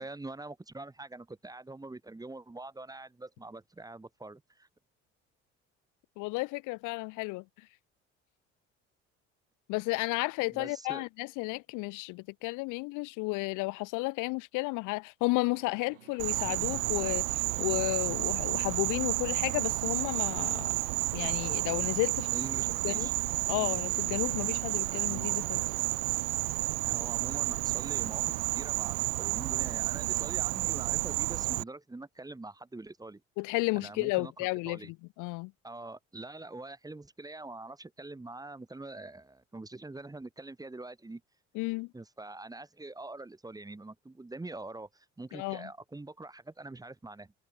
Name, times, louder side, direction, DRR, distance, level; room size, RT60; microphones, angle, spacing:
voice 1, 0.0-4.7 10.5-11.1 22.3-23.1 26.8-33.2 33.8-34.9 35.6-41.2 41.9-47.3, right 2 dB, 10° right, 0.9 m, -44 dB
voice 2, 6.2-7.4 9.7-20.7 21.1-22.3 22.8-23.1 23.5-25.6 33.4-34.8 35.2-35.5 41.6-41.9 45.3-45.7, left 25 dB, 60° left, 0.5 m, -32 dB
sound 1, 15.3-26.4, right 12 dB, 85° right, 3.6 m, -57 dB
Insect, 16.2-31.6, right 32 dB, 65° right, 0.6 m, -31 dB
hypercardioid pair, 55°, 36 cm